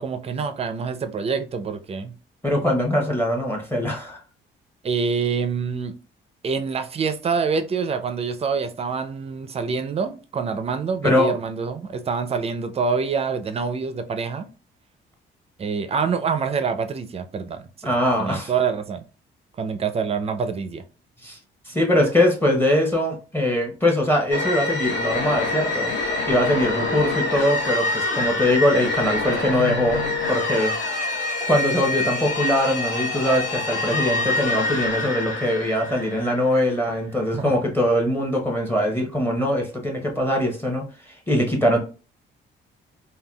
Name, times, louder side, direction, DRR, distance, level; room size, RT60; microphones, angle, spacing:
voice 1, 0.0-2.1 4.8-5.9 6.4-14.5 15.6-17.9 18.2-19.1 19.6-20.8 37.3-37.4, right 5 dB, 30° right, 0.4 m, -26 dB
voice 2, 2.4-4.2 11.0-11.3 17.8-18.5 21.2-21.4 21.7-25.9 26.3-30.0 30.3-30.7 31.4-41.8, left 1 dB, 10° left, 0.8 m, -22 dB
sound 1, 24.3-36.8, left 2 dB, 70° left, 0.9 m, -26 dB
3.5 x 2.2 x 2.2 m
cardioid pair, 90°, 20 cm